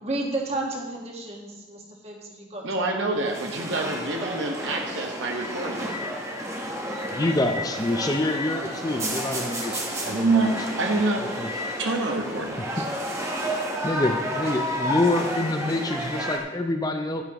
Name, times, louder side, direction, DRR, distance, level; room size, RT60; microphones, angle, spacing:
voice 1, 0.0-3.1 3.5-4.4, right 2 dB, 30° right, -1 dB, 1.6 m, -33 dB
voice 2, 2.6-5.9 10.0-11.3 11.8-12.8, right 3 dB, 75° right, 2 dB, 1.3 m, -26 dB
sound 1, 3.1-16.4, equal, 15° right, 1.0 m, -31 dB
voice 3, 6.9-10.6 10.9-11.5 12.6-12.9 13.8-17.2, left 1 dB, 20° left, 5 dB, 0.5 m, -27 dB
11.0 x 10.0 x 3.0 m, 1.1 s
head